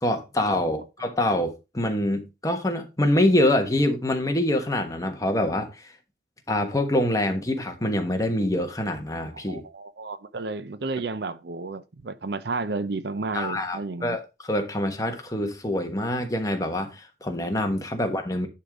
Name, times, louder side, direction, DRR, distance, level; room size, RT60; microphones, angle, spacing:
voice 1, 0.0-6.0 6.5-9.6 13.3-18.5, left 1 dB, 20° left, 1.3 m, -25 dB
voice 2, 9.3-14.2, right 3 dB, 60° right, 0.6 m, -32 dB
10.5 x 3.9 x 4.9 m
head